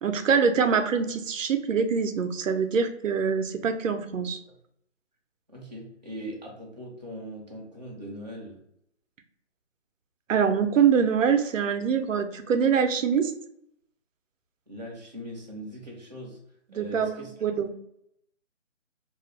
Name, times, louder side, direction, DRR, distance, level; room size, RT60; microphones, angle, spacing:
voice 1, 0.0-4.4 10.3-13.3 16.7-17.7, right 6 dB, 90° right, 7 dB, 0.5 m, -24 dB
voice 2, 5.5-8.6 14.7-16.4 16.7-17.4, equal, 35° right, -3 dB, 0.4 m, -40 dB
2.3 x 2.1 x 3.0 m, 0.74 s
hypercardioid pair, 180°, 37 cm